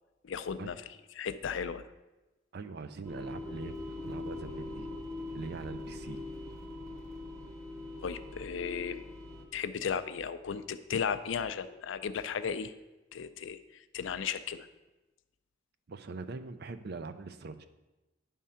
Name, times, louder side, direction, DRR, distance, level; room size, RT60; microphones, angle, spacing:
voice 1, 0.2-1.9 8.0-9.0 9.5-12.7 13.1-14.7, left 6 dB, 75° left, 12 dB, 0.4 m, -35 dB
voice 2, 2.5-4.9 5.3-6.2 15.9-17.7, right 4 dB, 55° right, 10 dB, 0.5 m, -42 dB
sound 1, 3.0-9.4, left 2 dB, 15° right, 1.0 m, -42 dB
9.7 x 3.7 x 5.5 m, 1.1 s
head